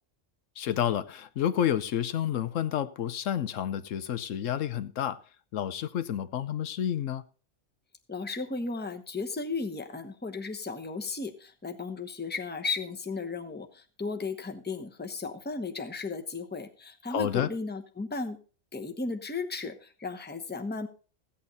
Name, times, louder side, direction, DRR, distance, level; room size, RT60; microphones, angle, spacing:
voice 1, 0.6-5.2 5.5-7.2 17.1-17.5, left 10 dB, 80° left, 1.1 m, -30 dB
voice 2, 8.1-18.4 18.7-20.9, left 4 dB, 10° left, 0.8 m, -35 dB
15.0 x 8.8 x 4.0 m
omnidirectional pair, 1.3 m